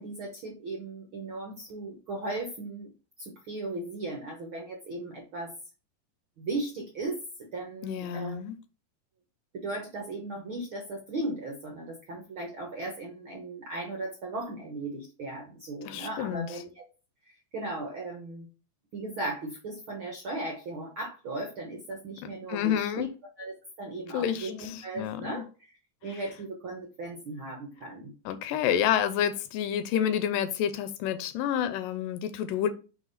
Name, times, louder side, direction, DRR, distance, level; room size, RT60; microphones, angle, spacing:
voice 1, 0.0-2.9 3.2-5.5 6.4-7.2 7.5-8.4 9.5-16.8 17.5-18.5 18.9-23.1 23.4-25.7 26.0-28.1, right 2 dB, 60° right, 1.4 m, -37 dB
voice 2, 7.8-8.6 15.9-16.5 22.5-23.1 24.1-25.3 28.3-32.7, left 9 dB, 85° left, 2.3 m, -29 dB
5.7 x 5.0 x 4.0 m
omnidirectional pair, 4.0 m